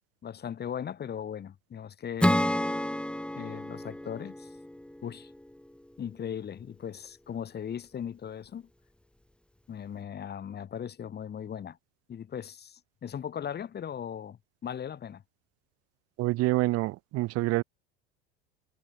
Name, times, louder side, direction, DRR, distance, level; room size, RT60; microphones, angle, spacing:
voice 1, 0.2-2.5 3.4-4.5 5.0-5.3 6.0-8.7 9.7-11.8 12.1-15.2, left 8 dB, 35° left, 6.2 m, -38 dB
Acoustic guitar / Strum, 2.2-5.7, left 1 dB, 5° left, 6.2 m, -30 dB
voice 2, 16.2-17.6, right 19 dB, 50° right, 1.3 m, -27 dB
hypercardioid pair, 95°, 30 cm